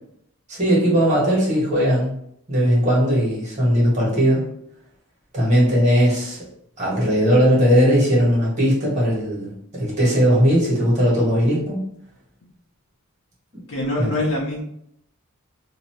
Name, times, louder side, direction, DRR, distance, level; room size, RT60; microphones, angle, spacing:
voice 1, 0.5-2.1 2.5-4.4 5.3-6.4 6.8-11.8 14.0-14.1, equal, 35° right, -6 dB, 1.4 m, -18 dB
voice 2, 13.7-14.6, left 1 dB, 60° left, -5 dB, 0.6 m, -24 dB
2.6 x 2.6 x 3.1 m, 0.73 s
head